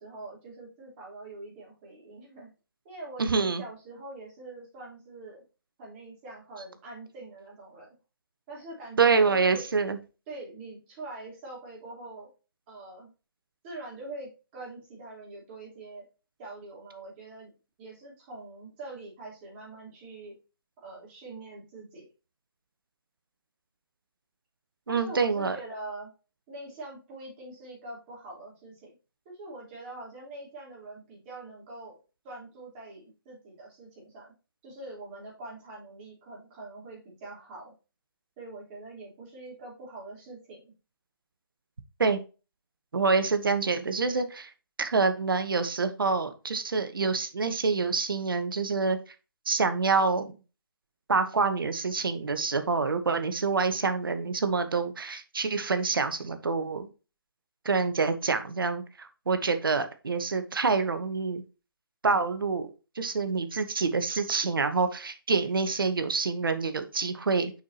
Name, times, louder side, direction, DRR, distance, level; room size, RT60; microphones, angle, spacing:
voice 1, 0.0-2.5 2.8-5.4 5.8-7.9 8.5-9.7 10.3-12.3 12.7-13.1 13.6-16.1 16.4-17.5 17.8-20.3 20.8-22.0 24.9-26.1 26.5-28.9 29.3-32.0 32.2-34.3 34.6-37.8 38.4-40.7, right 2 dB, 25° right, -3 dB, 3.6 m, -44 dB
voice 2, 3.2-3.6 9.0-10.0 24.9-25.6 42.0-42.2 42.9-44.5 44.8-49.0 49.5-50.3 51.1-56.9 57.6-61.4 62.0-62.7 62.9-67.5, right 4 dB, 70° right, 9 dB, 1.1 m, -26 dB
6.2 x 5.5 x 2.8 m, 0.32 s
figure-of-eight pair, 145°, 12 cm